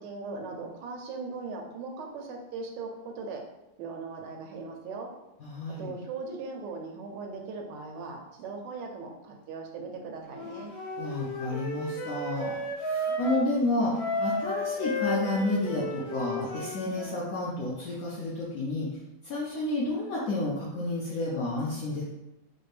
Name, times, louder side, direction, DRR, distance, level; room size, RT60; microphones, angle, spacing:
voice 1, 0.0-3.4 3.8-5.1 5.8-10.7, right 4 dB, 85° right, 1 dB, 1.2 m, -39 dB
voice 2, 5.4-5.9 11.0-13.9 14.2-18.9 19.2-22.0, left 2 dB, 65° left, -6 dB, 1.0 m, -30 dB
Wind instrument woodwind instrument, 10.3-13.5 13.9-17.3, left 1 dB, 45° left, 2.0 m, -33 dB
4.2 x 2.2 x 3.2 m, 0.93 s
omnidirectional pair, 1.9 m